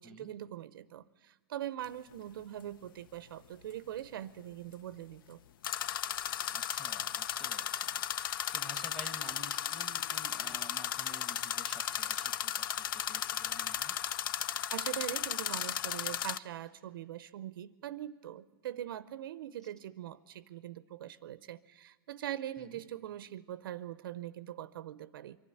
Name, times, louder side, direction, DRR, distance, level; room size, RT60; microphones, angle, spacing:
voice 1, 0.0-5.4 14.7-25.4, right 12 dB, 60° right, 17 dB, 0.6 m, -42 dB
sound 1, 1.8-1.9 5.6-16.4, left 10 dB, 60° left, 0.5 m, -35 dB
voice 2, 6.5-14.0 22.6-22.8, right 1 dB, 5° left, 9 dB, 1.2 m, -52 dB
24.0 x 12.0 x 9.9 m, 1.4 s
hypercardioid pair, 150°, 13 cm